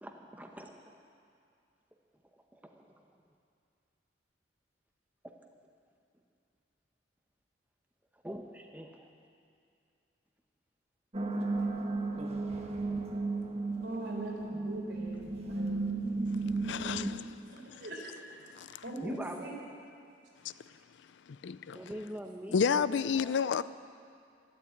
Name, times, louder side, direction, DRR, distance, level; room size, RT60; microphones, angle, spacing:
voice 1, 0.0-1.0 2.5-3.0 5.2-5.3 8.2-9.1 12.9-13.0 19.0-19.5 21.7-23.5, equal, 10° right, 0.8 m, -43 dB
sound 1, 11.1-17.1, right 3 dB, 35° right, 1.3 m, -34 dB
voice 2, 13.8-15.8 16.8-16.9 17.5-18.2 18.8-19.6, right 1 dB, 70° right, 3.9 m, -42 dB
voice 3, 16.6-17.3 18.6-18.8 20.4-20.5 21.3-21.8 22.5-23.6, left 6 dB, 70° left, 0.4 m, -30 dB
13.0 x 12.5 x 8.5 m
head